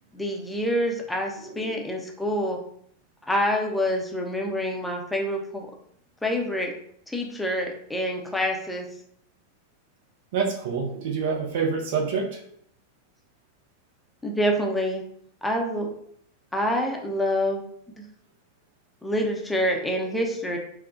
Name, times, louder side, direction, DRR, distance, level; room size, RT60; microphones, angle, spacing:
voice 1, 0.1-2.6 3.3-5.7 6.2-6.7 7.1-8.9 14.2-15.0 15.4-15.9 16.5-17.6 17.9-18.0 19.0-20.6, equal, 5° left, 1 dB, 0.5 m, -26 dB
voice 2, 10.3-12.4, right 5 dB, 55° right, 0 dB, 0.6 m, -27 dB
4.3 x 2.1 x 2.5 m, 0.67 s
figure-of-eight pair, 90°, 0 cm